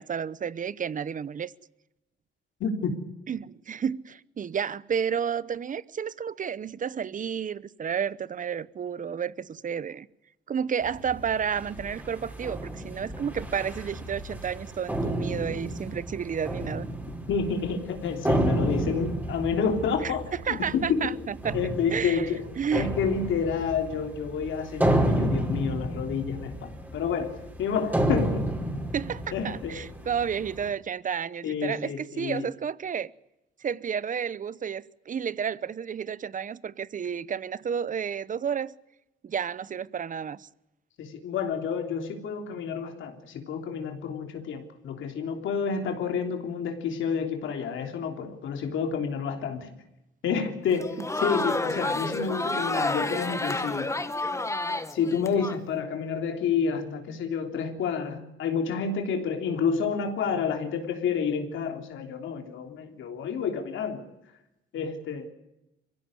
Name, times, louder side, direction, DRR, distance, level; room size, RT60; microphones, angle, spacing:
voice 1, 0.0-1.5 3.3-10.1 10.5-16.9 20.0-20.1 20.5-21.6 21.9-22.3 22.6-22.9 28.9-33.1 33.6-38.7 39.2-40.5 51.0-51.1, right 7 dB, 40° right, 0.8 m, -31 dB
voice 2, 2.6-3.0 17.3-21.2 21.5-22.4 22.7-27.3 27.6-28.5 29.3-29.8 31.4-32.5 41.0-49.7 50.2-53.9 54.9-64.1 64.7-65.3, left 6 dB, 75° left, 3.4 m, -29 dB
sound 1, 10.8-30.7, right 1 dB, 10° right, 5.0 m, -31 dB
Crowd, 50.7-55.6, left 2 dB, 15° left, 1.4 m, -29 dB
23.5 x 16.0 x 9.6 m
cardioid pair, 90°, 20 cm